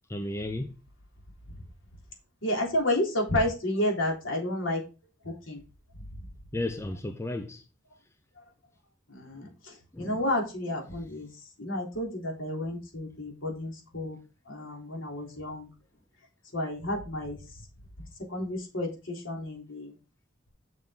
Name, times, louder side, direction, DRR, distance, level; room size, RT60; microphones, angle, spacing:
voice 1, 0.1-0.7 6.5-7.6 9.9-10.2, left 1 dB, 15° left, 0.6 m, -33 dB
voice 2, 2.4-4.8 5.2-5.6 6.2-6.3 9.1-11.3 11.6-14.2 14.5-15.7 16.5-17.4 18.3-20.0, left 1 dB, 70° left, 3.5 m, -31 dB
7.2 x 6.4 x 3.9 m
head